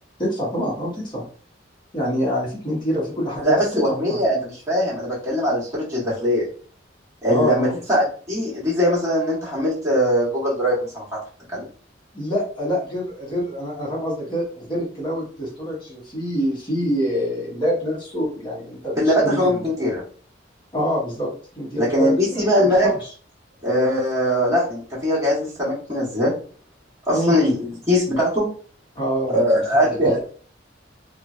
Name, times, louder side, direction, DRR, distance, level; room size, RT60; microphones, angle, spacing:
voice 1, 0.2-1.2 1.9-3.6 4.0-4.2 7.3-7.7 12.1-19.6 20.7-21.3 21.6-22.9 27.1-27.4 28.9-29.6 30.0-30.2, equal, 25° left, -6 dB, 0.9 m, -26 dB
voice 2, 3.4-6.5 7.2-11.0 11.5-11.6 19.0-20.0 21.8-22.9 23.6-26.3 27.1-28.4 29.3-30.2, equal, 15° right, -7 dB, 1.3 m, -21 dB
3.0 x 2.1 x 2.5 m, 0.42 s
head